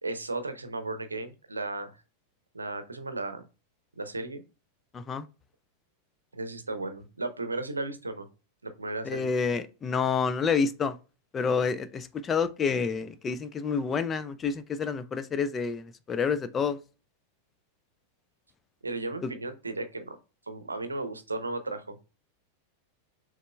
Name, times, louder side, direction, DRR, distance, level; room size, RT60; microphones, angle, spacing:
voice 1, 0.0-1.9 2.5-3.5 4.0-4.4 6.3-8.3 8.6-9.3 18.8-20.2 20.5-22.0, right 2 dB, 80° right, 0.7 m, -35 dB
voice 2, 4.9-5.3 9.0-11.0 11.3-16.8 19.2-19.3, left 5 dB, 20° left, 0.4 m, -28 dB
6.5 x 3.4 x 2.2 m
figure-of-eight pair, 90°, 0 cm